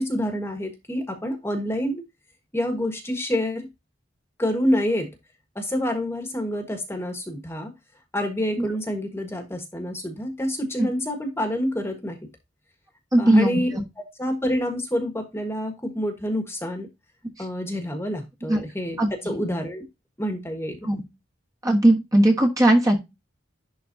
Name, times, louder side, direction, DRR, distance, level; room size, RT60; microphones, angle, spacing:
voice 1, 0.0-2.0 2.5-3.7 4.4-5.1 5.5-7.7 8.1-12.2 13.2-13.7 14.0-16.9 17.4-19.9 20.2-20.8, equal, 15° left, 5 dB, 1.4 m, -27 dB
voice 2, 13.1-13.8 18.5-18.6 19.0-19.3 20.8-21.0 21.6-23.0, right 1 dB, 20° right, 1 dB, 1.3 m, -19 dB
11.0 x 3.9 x 2.6 m, 0.22 s
head